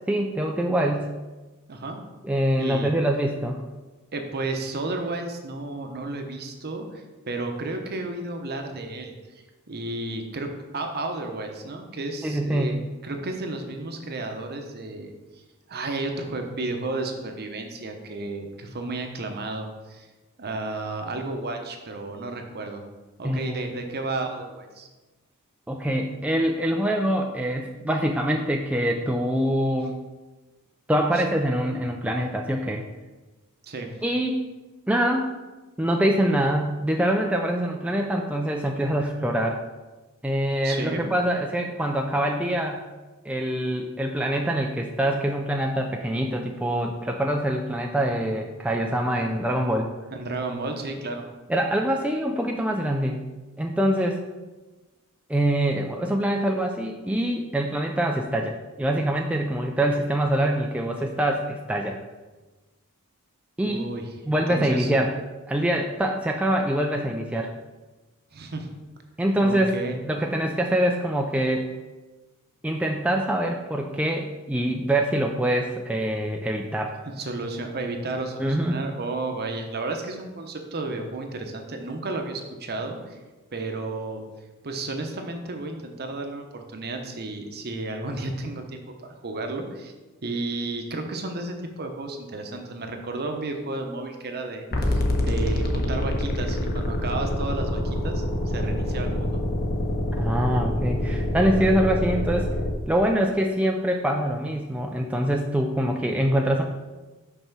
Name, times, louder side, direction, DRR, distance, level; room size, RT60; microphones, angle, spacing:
voice 1, 0.1-1.1 2.2-3.6 12.2-12.8 23.2-23.7 25.7-30.0 30.9-32.9 34.0-34.4 34.9-35.3 35.8-39.6 40.2-42.8 43.3-49.9 51.5-53.2 53.6-54.2 55.3-62.0 63.6-63.9 64.3-65.1 65.5-67.5 69.2-69.8 70.1-71.7 72.6-76.9 78.4-78.8 100.2-102.5 102.9-106.6, right 1 dB, 5° right, 1 dB, 0.4 m, -24 dB
voice 2, 2.6-2.9 4.1-9.1 9.7-12.8 13.0-15.1 15.7-20.1 20.4-22.8 23.2-24.9 31.1-31.2 33.6-33.9 40.6-41.1 50.1-51.2 63.6-64.0 64.3-64.9 68.3-68.7 69.4-70.0 77.0-83.2 83.5-84.2 84.6-89.9 90.2-99.4, right 2 dB, 45° right, 4 dB, 0.9 m, -32 dB
sound 1, 94.7-102.7, left 1 dB, 45° left, 0.9 m, -26 dB
5.5 x 4.3 x 6.0 m, 1.2 s
head